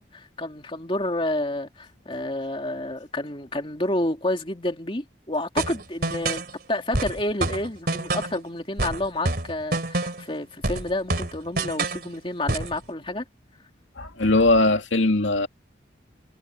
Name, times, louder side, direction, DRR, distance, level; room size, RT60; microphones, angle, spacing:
voice 1, 0.0-6.4 6.7-13.2, left 1 dB, 30° left, 2.8 m, -29 dB
sound 1, 5.6-6.5 6.9-8.4 8.8-10.3 10.6-12.1 12.5-12.8, right 2 dB, 55° right, 3.7 m, -27 dB
voice 2, 14.0-15.5, left 2 dB, 85° left, 2.4 m, -20 dB
head